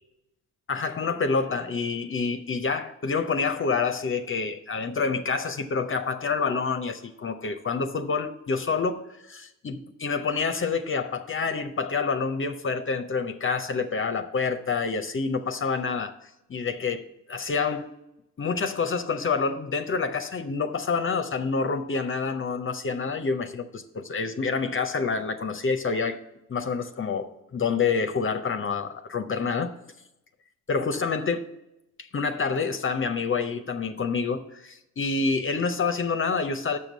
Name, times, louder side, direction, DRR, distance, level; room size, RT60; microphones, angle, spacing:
voice 1, 0.7-16.1 16.5-17.9 18.4-26.2 26.5-29.7 30.7-31.4 32.0-36.8, left 5 dB, 40° left, 0.6 m, -27 dB
6.7 x 5.2 x 6.2 m
supercardioid pair, 55°, 32 cm